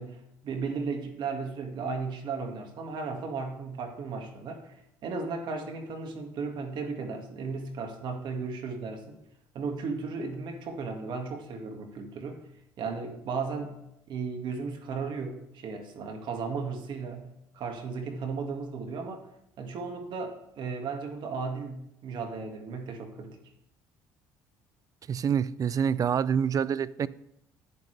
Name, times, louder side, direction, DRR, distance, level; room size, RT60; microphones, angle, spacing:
voice 1, 0.0-9.2 9.5-12.4 12.8-13.8 14.1-19.2 19.6-23.4, right 4 dB, 60° right, 4 dB, 2.0 m, -35 dB
voice 2, 25.1-27.1, right 7 dB, 40° right, 18 dB, 0.5 m, -26 dB
10.5 x 9.7 x 3.4 m, 0.80 s
supercardioid pair, 75°, 9 cm